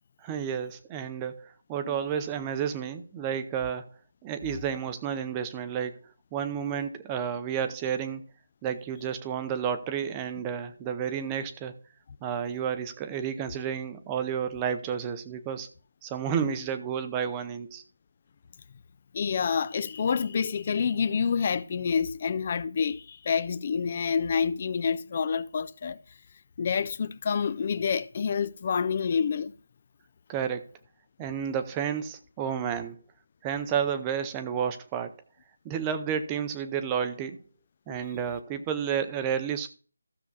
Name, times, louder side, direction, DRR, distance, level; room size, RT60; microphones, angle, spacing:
voice 1, 0.2-3.9 4.2-6.0 6.3-8.2 8.6-11.7 12.2-15.7 16.0-17.8 30.3-30.6 31.2-33.0 33.4-35.1 35.6-37.4 37.9-39.7, right 8 dB, 10° right, 0.6 m, -31 dB
voice 2, 19.1-26.0 26.6-29.5 37.9-38.0, left 6 dB, 25° left, 0.3 m, -28 dB
15.5 x 6.9 x 2.3 m
figure-of-eight pair, 175°, 0 cm